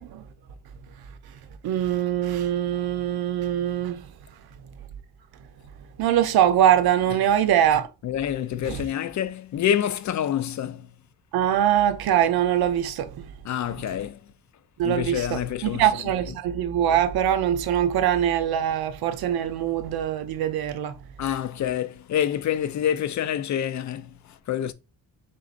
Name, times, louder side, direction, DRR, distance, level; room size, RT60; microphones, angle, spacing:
voice 1, 1.6-4.1 6.0-7.9 8.6-8.8 11.3-13.3 13.7-13.8 14.8-21.0, right 10 dB, 90° right, 0.7 m, -23 dB
voice 2, 8.0-10.9 13.4-14.2 14.8-15.9 21.2-24.7, left 10 dB, 50° left, 0.5 m, -27 dB
4.2 x 3.8 x 2.5 m
cardioid pair, 110°, 36 cm